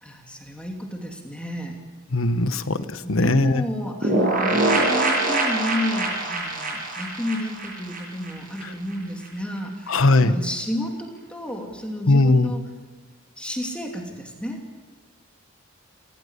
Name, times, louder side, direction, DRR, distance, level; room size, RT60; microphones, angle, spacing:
voice 1, 0.0-1.8 3.0-12.7 13.4-14.6, left 1 dB, 5° left, 1 dB, 2.7 m, -31 dB
voice 2, 2.1-3.6 9.9-10.3 12.1-12.5, left 2 dB, 75° left, 10 dB, 1.3 m, -19 dB
sound 1, 4.0-8.6 8.9-9.0 9.2-9.3, right 2 dB, 40° right, 7.5 m, -24 dB
28.5 x 15.0 x 8.3 m, 1.3 s
head